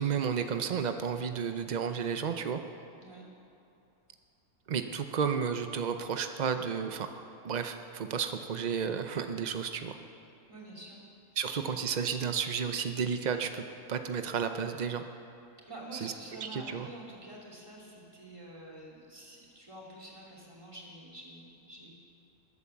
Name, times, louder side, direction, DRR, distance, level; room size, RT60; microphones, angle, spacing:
voice 1, 0.0-2.6 4.7-7.1 7.4-10.0 11.4-13.6 13.9-15.0 15.9-16.1 16.4-16.9, right 7 dB, 70° right, 7 dB, 0.4 m, -32 dB
voice 2, 10.5-11.0 11.4-11.7 15.7-21.9, right 1 dB, 20° right, -3 dB, 2.9 m, -48 dB
20.5 x 8.5 x 7.1 m, 2.8 s
omnidirectional pair, 1.6 m